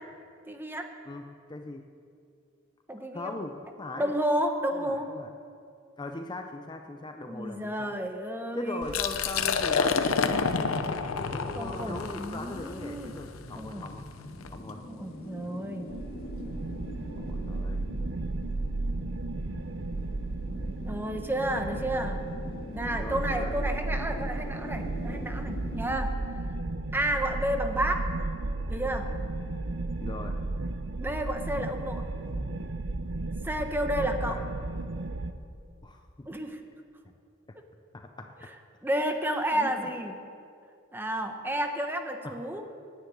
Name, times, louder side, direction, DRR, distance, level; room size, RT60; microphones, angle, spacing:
voice 1, 0.5-0.9 2.9-3.4 4.0-5.1 7.2-9.0 11.5-13.2 13.6-13.9 14.9-15.9 20.8-22.2 22.7-26.1 26.9-28.1 28.7-29.1 31.0-32.1 33.4-34.4 36.3-36.6 38.8-40.1 40.9-42.6, right 1 dB, 10° right, 5 dB, 1.0 m, -31 dB
voice 2, 1.1-1.9 3.1-4.1 4.7-5.3 6.0-7.9 8.5-14.1 14.5-14.8 17.2-17.8 23.0-23.5 30.0-30.4 33.8-34.4 35.8-36.3 37.9-38.5 39.5-39.8 42.2-42.4, left 2 dB, 20° left, 5 dB, 0.5 m, -40 dB
Liquid, 8.8-14.6, left 5 dB, 75° left, 0.7 m, -29 dB
sound 1, 10.3-26.0, left 1 dB, 45° left, 2.0 m, -44 dB
sound 2, 15.9-35.3, right 2 dB, 65° right, 0.7 m, -34 dB
10.5 x 9.9 x 9.2 m, 2.5 s
head